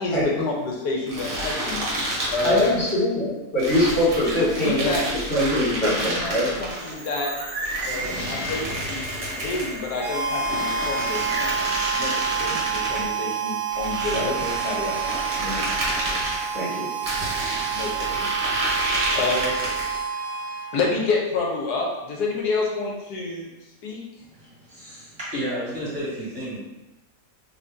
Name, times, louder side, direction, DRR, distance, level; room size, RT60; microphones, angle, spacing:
voice 1, 0.0-1.9 2.3-2.8 4.2-5.0 5.6-5.9 6.2-6.3 6.6-7.3 7.8-11.5 11.9-14.3 14.6-15.3 17.7-18.3 18.6-19.7 20.7-23.5 23.8-24.0, left 3 dB, 80° left, -1 dB, 1.3 m, -28 dB
sound 1, 1.1-3.0 3.6-6.9 7.6-9.8 10.4-13.0 13.7-16.4 17.0-20.0, right 1 dB, 40° right, 1.0 m, -29 dB
voice 2, 2.4-4.9 5.3-6.4 12.5-12.6 14.1-14.5 15.4-15.6 16.5-16.9, left 1 dB, 50° left, -9 dB, 1.7 m, -23 dB
sound 2, 6.6-11.8, right 2 dB, 80° right, 0.4 m, -34 dB
Harmonica, 10.0-21.0, right 7 dB, 65° right, 1.1 m, -28 dB
voice 3, 24.2-26.6, equal, 20° right, -9 dB, 1.6 m, -32 dB
3.0 x 2.6 x 3.5 m, 1.0 s
omnidirectional pair, 1.7 m